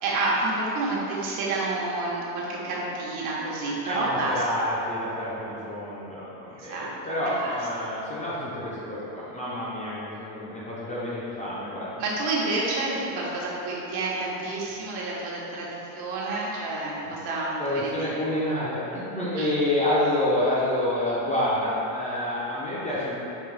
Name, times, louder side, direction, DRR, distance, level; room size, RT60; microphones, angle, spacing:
voice 1, 0.0-4.4 6.5-6.9 7.2-7.6 12.0-18.1 19.4-19.5, right 2 dB, 60° right, -5 dB, 1.1 m, -29 dB
voice 2, 3.8-11.9 17.0-17.1 17.6-23.2, left 1 dB, 15° left, -9 dB, 0.4 m, -28 dB
5.2 x 2.9 x 3.2 m, 3.0 s
cardioid pair, 150°, 46 cm